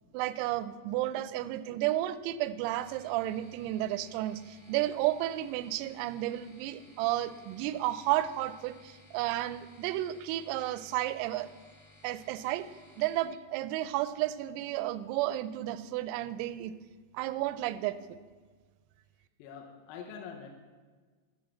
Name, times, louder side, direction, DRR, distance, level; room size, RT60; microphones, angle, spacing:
voice 1, 0.1-11.5 12.0-12.7 13.0-16.7 17.2-18.2, right 14 dB, 90° right, 14 dB, 3.3 m, -32 dB
sound 1, 2.5-13.2, left 1 dB, 25° left, 1.0 m, -59 dB
voice 2, 19.4-20.5, left 6 dB, 85° left, 2 dB, 3.7 m, -45 dB
14.0 x 6.4 x 8.1 m, 1.5 s
omnidirectional pair, 6.0 m